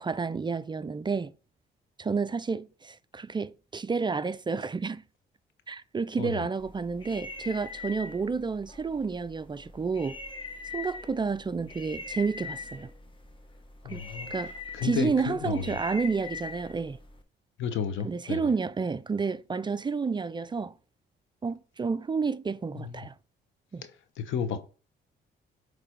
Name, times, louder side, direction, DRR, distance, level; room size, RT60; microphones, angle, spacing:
voice 1, 0.0-1.3 2.0-5.0 5.7-10.2 10.7-12.9 13.8-14.0 14.3-14.5 14.8-17.0 18.0-20.7 21.4-23.1 23.7-23.8, right 5 dB, 25° right, 0.4 m, -30 dB
voice 2, 6.2-6.5 13.8-14.3 14.7-15.8 17.6-18.5 22.7-23.0 24.2-24.6, left 7 dB, 80° left, 1.0 m, -32 dB
sound 1, 6.6-17.2, left 4 dB, 25° left, 1.0 m, -42 dB
8.0 x 3.3 x 4.6 m
cardioid pair, 90°, 20 cm